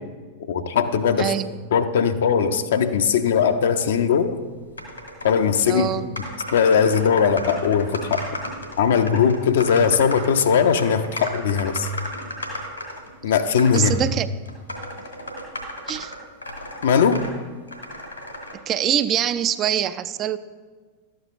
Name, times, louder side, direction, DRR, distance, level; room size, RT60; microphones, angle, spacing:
voice 1, 0.5-1.3 1.7-4.4 5.2-5.9 6.5-8.2 8.8-11.9 13.2-14.0 16.8-17.2, left 7 dB, 60° left, 9 dB, 0.5 m, -19 dB
voice 2, 1.2-1.5 5.7-6.1 13.7-14.3 15.9-16.1 18.7-20.4, right 10 dB, 30° right, 12 dB, 0.3 m, -24 dB
sound 1, 4.8-5.5 5.8-5.9 6.2-13.1 13.6-13.9 14.4-17.3 17.7-18.5, left 1 dB, 85° left, 1.7 m, -34 dB
12.5 x 8.2 x 2.4 m, 1.5 s
figure-of-eight pair, 90°, 0 cm